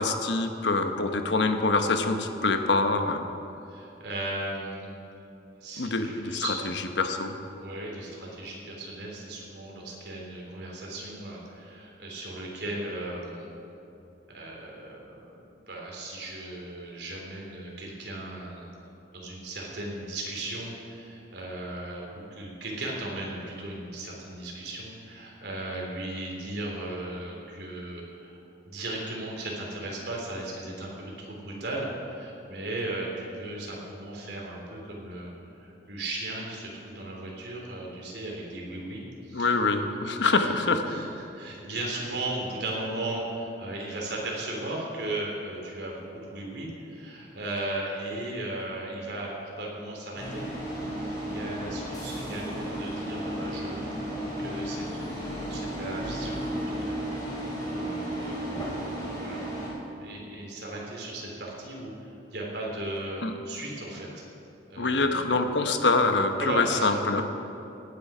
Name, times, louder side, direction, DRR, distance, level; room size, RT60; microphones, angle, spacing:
voice 1, 0.0-3.3 5.8-7.3 39.3-40.8 63.2-63.3 64.8-67.2, left 3 dB, 80° left, 7 dB, 1.0 m, -25 dB
voice 2, 3.7-4.9 5.6-6.5 7.5-13.5 14.3-18.7 19.1-28.4 28.7-35.3 35.6-39.5 40.2-40.5 40.9-41.1 41.3-56.4 56.8-56.9 57.2-58.6 59.1-59.4 60.0-64.1 64.7-65.3 66.4-67.0, right 2 dB, 65° right, -3 dB, 3.4 m, -36 dB
sound 1, 50.2-59.7, right 1 dB, 20° left, 3.6 m, -34 dB
18.0 x 9.7 x 5.0 m, 2.9 s
head